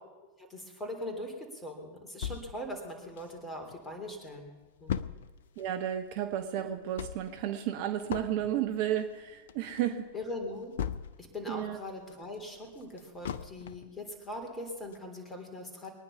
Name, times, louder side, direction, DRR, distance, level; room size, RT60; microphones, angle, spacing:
voice 1, 0.4-4.5 4.8-5.0 10.1-10.7 11.2-15.9, left 1 dB, 15° left, 3 dB, 3.5 m, -41 dB
sound 1, 2.2-3.8 4.1-4.2 4.4-11.4 11.8-14.0 14.4-14.5 14.9-15.0, left 8 dB, 60° left, 0.6 m, -39 dB
voice 2, 5.6-10.1 11.5-11.8, right 11 dB, 45° right, 7 dB, 1.0 m, -32 dB
22.5 x 9.8 x 5.7 m, 1.2 s
figure-of-eight pair, 90°, 0 cm